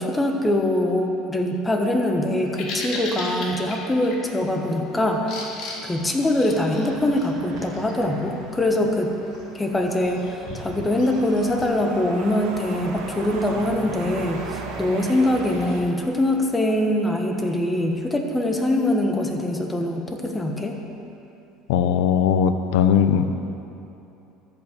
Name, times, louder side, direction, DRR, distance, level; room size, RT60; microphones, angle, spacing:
voice 1, 0.0-9.1 9.5-20.8, left 1 dB, 15° left, 3 dB, 1.2 m, -23 dB
Bird vocalization bird call bird song, 2.3-11.7, left 2 dB, 55° left, 2.0 m, -38 dB
sound 1, 6.5-15.8, right 4 dB, 75° right, 1.6 m, -38 dB
voice 2, 21.7-23.3, left 8 dB, 85° left, 10 dB, 0.6 m, -19 dB
13.5 x 5.8 x 6.7 m, 2.8 s
supercardioid pair, 105°, 0 cm